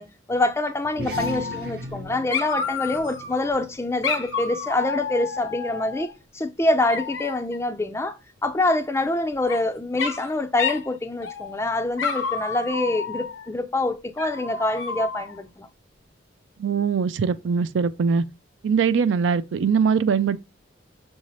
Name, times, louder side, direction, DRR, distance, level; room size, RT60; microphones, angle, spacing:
voice 1, 0.0-15.7, left 2 dB, 15° left, 0.4 m, -25 dB
sound 1, 0.8-5.6, right 2 dB, 50° right, 0.8 m, -39 dB
Dog, 1.1-2.0 2.3-3.5 4.0-6.1 6.9-7.6 9.0-9.6 10.0-10.3 10.6-10.9 11.2-11.6 12.0-13.5 14.2-15.4, left 5 dB, 85° left, 0.8 m, -30 dB
voice 2, 16.6-18.2 18.6-20.4, right 6 dB, 75° right, 0.4 m, -22 dB
6.5 x 2.7 x 3.0 m
head